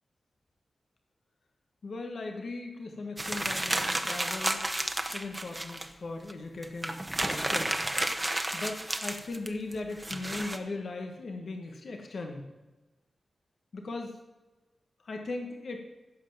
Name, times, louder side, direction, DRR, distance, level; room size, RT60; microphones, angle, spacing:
voice 1, 1.8-4.6 5.1-7.8 8.5-12.4 13.7-14.2 15.0-15.8, left 3 dB, 70° left, 3 dB, 1.4 m, -38 dB
sound 1, 3.2-5.9 6.3-6.4 6.6-10.6, right 1 dB, 15° right, 1.2 m, -31 dB
15.0 x 5.7 x 7.2 m, 1.2 s
cardioid pair, 60°, 0 cm